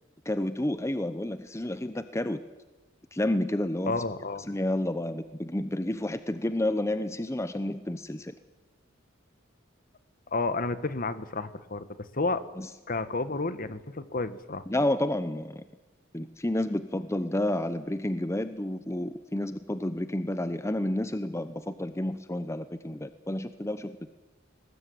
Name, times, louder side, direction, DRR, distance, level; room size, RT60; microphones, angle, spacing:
voice 1, 0.2-2.4 3.1-4.0 4.5-8.3 12.6-12.7 14.7-15.6 16.1-24.0, left 1 dB, 15° left, 11 dB, 0.8 m, -30 dB
voice 2, 3.9-4.5 10.3-11.9 12.1-12.4 12.9-14.7, left 3 dB, 45° left, 13 dB, 1.4 m, -31 dB
22.5 x 19.5 x 9.4 m, 1.1 s
head